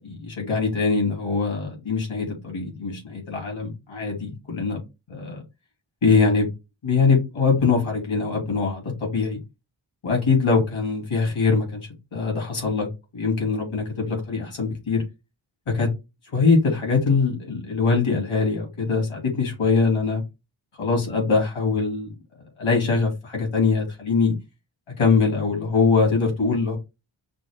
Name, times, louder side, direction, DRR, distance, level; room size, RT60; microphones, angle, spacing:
voice 1, 0.0-4.8 5.1-5.4 6.0-6.5 6.8-9.4 10.0-11.8 12.1-12.9 13.1-15.0 15.7-15.9 16.3-20.2 20.8-22.1 22.6-24.3 25.0-26.8, left 4 dB, 90° left, 2.3 m, -22 dB
6.0 x 2.1 x 3.2 m
wide cardioid pair, 105°, 48 cm